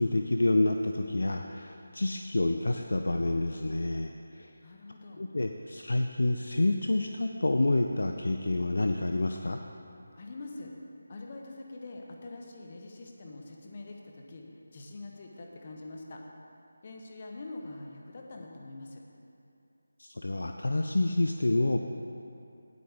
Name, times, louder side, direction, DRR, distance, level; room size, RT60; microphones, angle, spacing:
voice 1, 0.0-4.5 5.2-9.6 20.0-21.8, left 2 dB, 60° left, 4 dB, 0.5 m, -28 dB
voice 2, 4.6-5.3 10.2-10.7 11.1-14.4 14.7-16.2 16.8-19.0, left 2 dB, 35° left, 1 dB, 1.3 m, -44 dB
17.0 x 8.0 x 3.6 m, 2.7 s
figure-of-eight pair, 160°, 0 cm